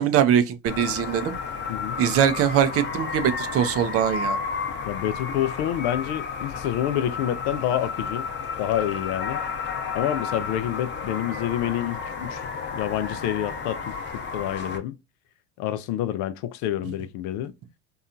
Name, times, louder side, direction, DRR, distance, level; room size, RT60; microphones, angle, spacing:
voice 1, 0.0-1.3 2.0-4.4, right 9 dB, 45° right, 0.5 m, -22 dB
sound 1, 0.7-14.8, left 5 dB, 35° left, 0.8 m, -32 dB
voice 2, 4.8-8.3 8.6-9.4 9.9-15.0 15.6-17.5, left 11 dB, 65° left, 0.5 m, -28 dB
2.8 x 2.3 x 2.4 m
supercardioid pair, 95°, 33 cm